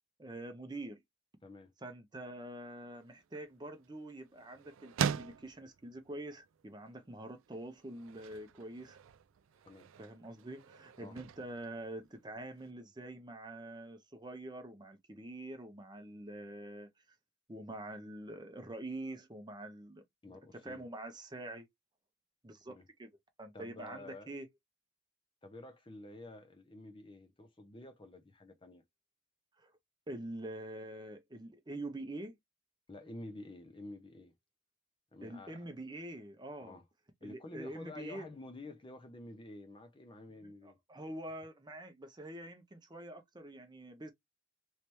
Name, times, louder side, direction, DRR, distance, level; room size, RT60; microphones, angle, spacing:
voice 1, 0.2-1.0 1.8-9.0 10.0-16.9 17.5-20.0 20.5-21.7 22.4-23.1 23.4-24.5 29.6-29.7 30.1-32.4 35.2-36.8 37.2-38.3 40.4-44.1, right 1 dB, 20° right, 0.6 m, -45 dB
voice 2, 1.4-1.7 9.7-9.9 11.0-11.2 20.2-20.8 22.7-22.8 23.5-24.3 25.4-28.8 32.9-34.3 35.1-35.7 36.6-36.8 37.2-40.8, left 2 dB, 25° left, 0.6 m, -50 dB
sound 1, 2.9-12.7, right 7 dB, 75° right, 0.3 m, -43 dB
3.3 x 3.2 x 3.0 m
head